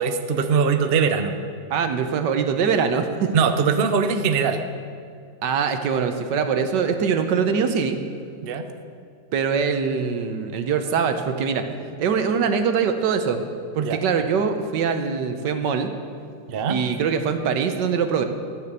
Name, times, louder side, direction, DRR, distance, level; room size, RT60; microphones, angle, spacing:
voice 1, 0.0-1.3 3.3-4.6 8.4-8.7 13.8-14.0 16.5-16.8, right 6 dB, 50° right, 7 dB, 0.7 m, -21 dB
voice 2, 1.7-3.3 5.4-8.0 9.3-13.4 13.7-15.9 16.7-18.2, right 6 dB, 75° right, 7 dB, 1.5 m, -23 dB
14.0 x 6.8 x 8.2 m, 2.3 s
omnidirectional pair, 1.9 m